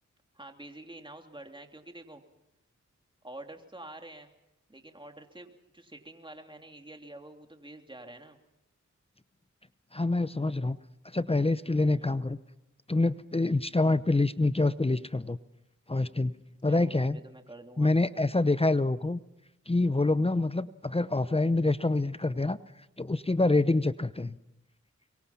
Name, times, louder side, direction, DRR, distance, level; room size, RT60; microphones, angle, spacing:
voice 1, 0.3-2.2 3.2-4.3 4.7-8.4 11.9-12.1 16.7-17.9, right 1 dB, 15° right, 4 dB, 3.0 m, -47 dB
voice 2, 9.9-10.8 11.1-12.4 12.9-15.4 15.9-16.3 16.6-17.2 17.8-19.2 19.7-22.6 23.0-24.4, left 2 dB, 20° left, 15 dB, 0.8 m, -26 dB
24.5 x 23.0 x 5.8 m, 0.93 s
cardioid pair, 40°, 31 cm